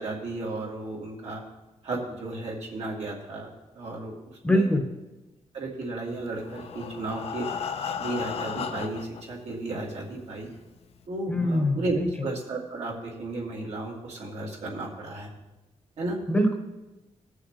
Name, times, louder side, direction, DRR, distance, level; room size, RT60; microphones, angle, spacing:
voice 1, 0.0-1.4 1.8-4.1 4.4-4.7 5.5-7.5 8.0-10.5 11.1-12.0 12.2-15.3 16.0-16.2, right 2 dB, 70° right, -3 dB, 2.5 m, -34 dB
voice 2, 4.4-4.9 11.3-12.3 16.3-16.5, left 1 dB, 10° left, 3 dB, 1.0 m, -24 dB
Breathing, 6.3-9.2 10.0-10.1 10.4-10.5 11.0-11.1, left 7 dB, 60° left, 0.6 m, -34 dB
18.0 x 6.3 x 3.2 m, 1.0 s
wide cardioid pair, 145°, 12 cm